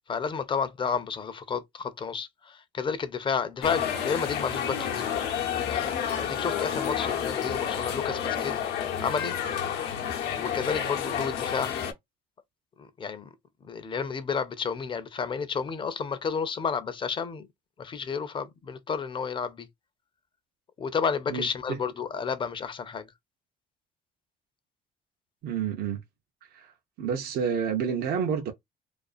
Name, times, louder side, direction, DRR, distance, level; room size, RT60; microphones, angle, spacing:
voice 1, 0.1-5.1 5.6-8.6 9.0-9.4 9.9-10.0 10.3-11.7 12.8-13.3 13.6-17.5 17.8-19.7 20.8-23.1, left 6 dB, 30° left, 0.5 m, -31 dB
sound 1, 3.6-11.9, left 8 dB, 80° left, 0.7 m, -30 dB
voice 2, 21.3-21.8 25.4-26.0 26.5-26.7 27.0-28.5, right 7 dB, 65° right, 0.6 m, -29 dB
2.4 x 2.3 x 2.4 m
cardioid pair, 110°, 17 cm